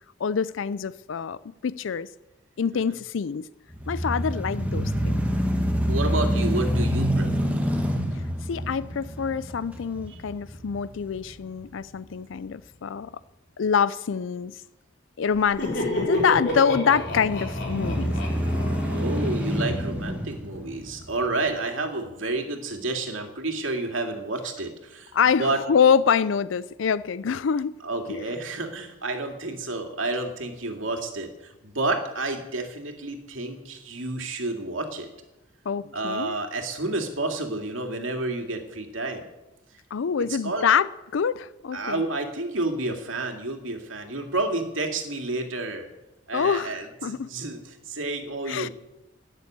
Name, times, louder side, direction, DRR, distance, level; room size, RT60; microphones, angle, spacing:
voice 1, 0.2-2.1 2.6-3.5 3.9-5.2 8.5-13.1 13.6-14.6 15.2-18.2 25.1-27.7 28.1-28.3 35.7-36.4 39.9-42.0 46.3-47.3 48.5-48.7, left 6 dB, 75° left, 0.4 m, -25 dB
sound 1, 3.7-11.8 12.3-12.4 16.9-21.4, equal, 5° right, 1.6 m, -27 dB
voice 2, 5.9-7.5 10.1-10.2 18.9-25.6 27.8-35.1 35.9-39.3 40.4-40.7 41.7-45.9 46.3-48.7, right 2 dB, 85° right, 2.4 m, -30 dB
Laughter, 15.3-20.0, left 1 dB, 60° left, 4.5 m, -30 dB
12.5 x 10.0 x 9.3 m
head